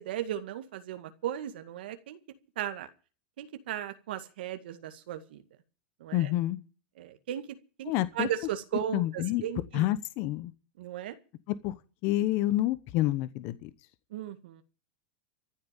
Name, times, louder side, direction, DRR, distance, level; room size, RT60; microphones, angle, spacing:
voice 1, 0.0-2.2 2.6-2.9 3.4-5.4 6.0-6.3 7.0-9.9 10.8-11.2 14.1-14.6, right 11 dB, 80° right, 8 dB, 1.9 m, -36 dB
voice 2, 6.1-6.6 7.9-8.3 8.9-9.4 9.7-10.5 11.5-11.7 12.0-13.7, left 15 dB, 50° left, 15 dB, 1.0 m, -28 dB
14.5 x 8.1 x 9.1 m, 0.36 s
supercardioid pair, 140°, 5 cm